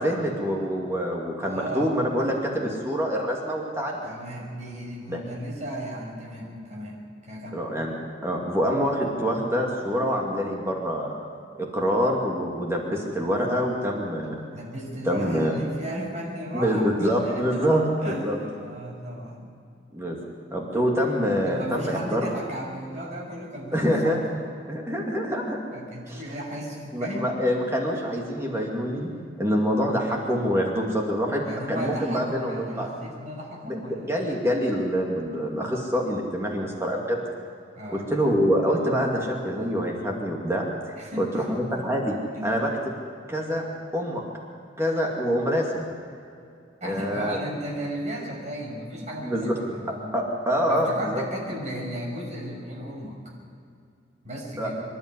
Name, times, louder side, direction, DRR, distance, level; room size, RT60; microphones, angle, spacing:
voice 1, 0.0-4.0 5.1-5.2 7.5-8.0 8.2-11.3 11.6-14.4 15.0-15.5 16.5-18.4 19.9-20.2 20.5-22.3 23.7-24.2 24.7-25.6 26.1-26.2 26.9-29.1 29.4-32.9 33.6-33.8 34.1-37.2 37.9-40.6 41.2-42.1 42.4-42.7 43.3-43.6 43.9-44.2 44.8-45.9 46.8-47.4 49.2-49.5 49.9-51.2 54.6-54.7, equal, 15° right, -1 dB, 2.4 m, -25 dB
voice 2, 1.4-2.1 4.0-7.6 14.5-17.7 18.0-19.5 21.5-24.2 25.7-27.3 31.4-34.1 37.7-38.1 41.0-41.6 42.3-42.4 46.8-50.2 50.7-53.3 54.2-54.8, right 1 dB, 40° right, -2 dB, 6.1 m, -35 dB
26.0 x 11.5 x 9.7 m, 2.4 s
head